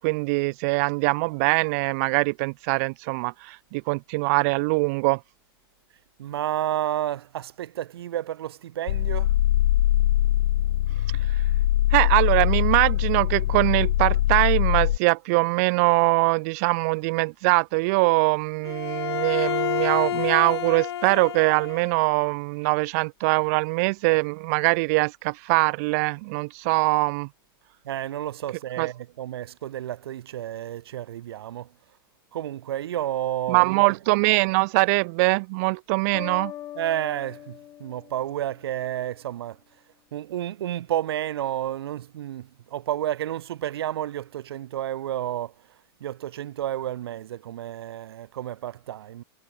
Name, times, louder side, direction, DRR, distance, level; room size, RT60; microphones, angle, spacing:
voice 1, 0.0-5.2 11.9-27.3 28.8-28.9 33.5-36.5, right 28 dB, 40° right, 0.8 m, -22 dB
voice 2, 6.2-9.3 27.8-31.7 32.3-34.0 36.7-39.6 40.1-45.5 46.0-49.2, right 12 dB, 75° right, 3.1 m, -31 dB
sound 1, 8.9-15.0, left 13 dB, 70° left, 1.7 m, -22 dB
Bowed string instrument, 18.6-22.1, left 11 dB, 90° left, 5.0 m, -29 dB
sound 2, 36.1-39.0, left 12 dB, 20° left, 2.4 m, -41 dB
supercardioid pair, 170°, 13 cm